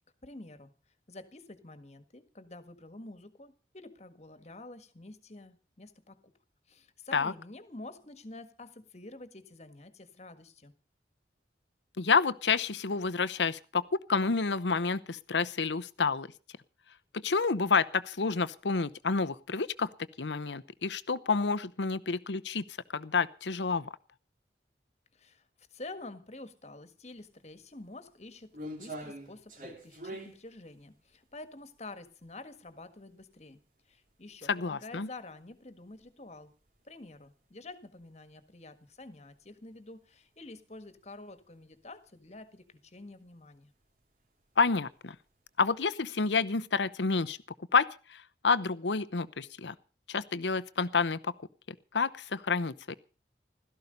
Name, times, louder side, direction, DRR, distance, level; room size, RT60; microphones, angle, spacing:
voice 1, 0.2-0.7 1.1-6.3 6.7-10.7 25.1-36.5 36.8-43.7, left 2 dB, 40° left, 11 dB, 1.7 m, -48 dB
voice 2, 12.0-16.3 17.1-19.9 20.2-22.6 22.9-23.9 34.5-35.1 44.6-45.2 45.6-47.4 47.7-49.7 50.1-51.3 51.9-52.9, left 4 dB, 85° left, 15 dB, 0.8 m, -29 dB
sound 1, 27.2-27.3 27.8-32.8 33.2-33.3 34.0-34.2 34.5-34.6 35.5-35.6 35.9-36.1 36.6-36.8 37.1-37.2 39.3-39.4 40.7-41.0 41.4-41.8 42.2-42.4 42.7-42.8 43.8-44.0 44.6-45.3 45.7-45.8, right 1 dB, 50° right, 2.9 m, -44 dB
16.5 x 13.5 x 5.3 m, 0.37 s
head